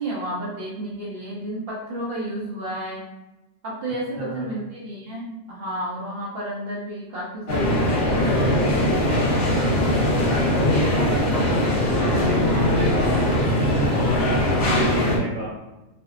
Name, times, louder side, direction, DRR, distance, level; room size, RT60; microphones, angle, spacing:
voice 1, 0.0-3.1 3.6-9.3 10.5-11.3 12.5-12.9, right 1 dB, 60° right, -4 dB, 0.6 m, -32 dB
voice 2, 4.2-4.5 10.2-11.2 11.9-15.5, equal, 80° right, -7 dB, 1.3 m, -30 dB
sound 1, 7.5-15.2, left 1 dB, 60° left, 0.9 m, -21 dB
2.5 x 2.0 x 2.3 m, 1.0 s
omnidirectional pair, 1.3 m